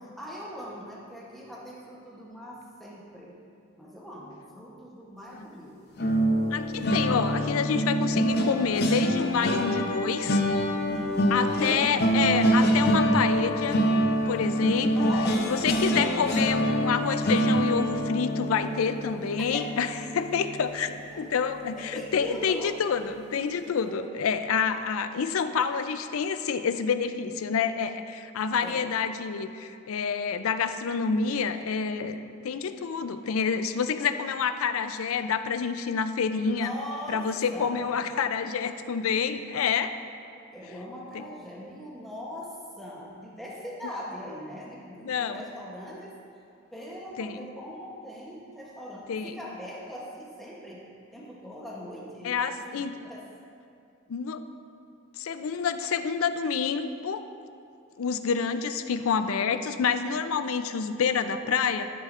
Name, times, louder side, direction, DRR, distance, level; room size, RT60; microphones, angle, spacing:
voice 1, 0.0-3.4 3.8-5.9 10.9-11.7 14.9-15.9 19.4-19.6 21.1-21.4 21.7-22.8 23.7-24.1 28.6-28.8 36.5-37.2 37.5-38.1 40.5-46.1 46.7-50.8 51.1-53.3, equal, ahead, -5 dB, 0.9 m, -41 dB
sound 1, 6.0-21.1 21.5-21.8 22.1-22.3, equal, 50° left, 0.7 m, -26 dB
voice 2, 6.5-10.4 11.3-13.8 14.3-15.1 15.5-36.7 37.1-39.9 45.0-45.4 47.2-47.5 49.1-49.3 52.2-53.1 54.1-54.4 55.2-57.3 58.0-61.8, left 6 dB, 80° left, 10 dB, 0.4 m, -28 dB
14.0 x 6.4 x 2.5 m, 2.5 s
head